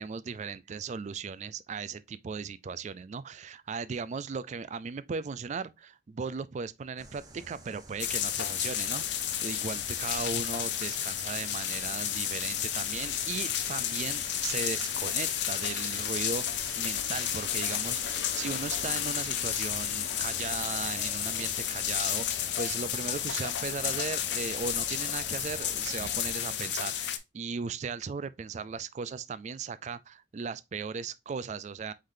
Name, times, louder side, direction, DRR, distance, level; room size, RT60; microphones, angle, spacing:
voice 1, 0.0-16.4 16.8-22.3 22.6-31.9, right 5 dB, 35° right, 0.3 m, -37 dB
sound 1, 7.0-26.3, right 3 dB, 20° right, 0.9 m, -48 dB
sound 2, 8.0-27.2, left 10 dB, 60° left, 0.5 m, -32 dB
Crowd, 19.9-26.7, equal, 10° left, 1.7 m, -52 dB
4.9 x 3.8 x 2.6 m
head